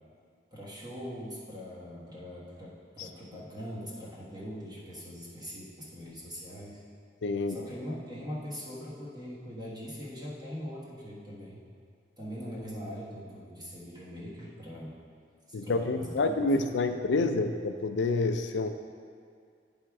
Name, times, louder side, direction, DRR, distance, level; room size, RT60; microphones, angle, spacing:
voice 1, 0.5-6.8 7.5-11.6 12.2-15.0 15.6-16.3, equal, 25° right, -7 dB, 1.4 m, -41 dB
voice 2, 7.2-7.6 15.5-18.7, left 3 dB, 85° left, 8 dB, 0.5 m, -28 dB
9.7 x 3.6 x 4.7 m, 2.2 s
head